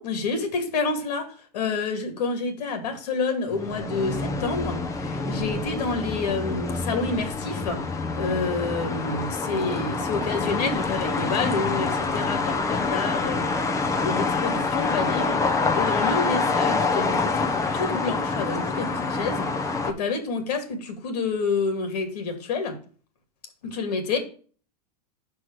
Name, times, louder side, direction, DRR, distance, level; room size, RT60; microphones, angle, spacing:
voice 1, 0.0-7.8 8.1-13.5 14.0-22.8 23.6-24.2, left 4 dB, 75° left, 6 dB, 2.6 m, -29 dB
sound 1, 3.5-19.9, left 4 dB, 15° left, 1.1 m, -26 dB
5.9 x 5.0 x 6.3 m, 0.40 s
hypercardioid pair, 120°, 21 cm